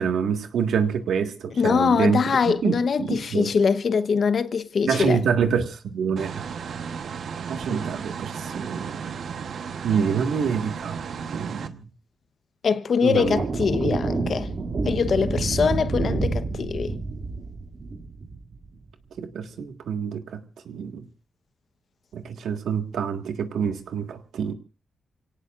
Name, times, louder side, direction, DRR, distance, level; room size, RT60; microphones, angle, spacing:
voice 1, 0.0-3.5 4.9-6.4 7.5-9.0 9.8-11.0 11.3-11.8 13.0-13.5 13.9-14.0 19.2-21.1 22.1-24.5, right 6 dB, 85° right, 1.6 m, -26 dB
voice 2, 1.6-5.2 12.6-14.5 14.8-17.0, left 6 dB, 55° left, 1.0 m, -23 dB
sound 1, 6.2-11.7, right 6 dB, 70° right, 1.1 m, -34 dB
sound 2, 13.1-18.8, right 3 dB, 55° right, 2.5 m, -28 dB
28.5 x 18.0 x 2.5 m
cardioid pair, 105°, 0 cm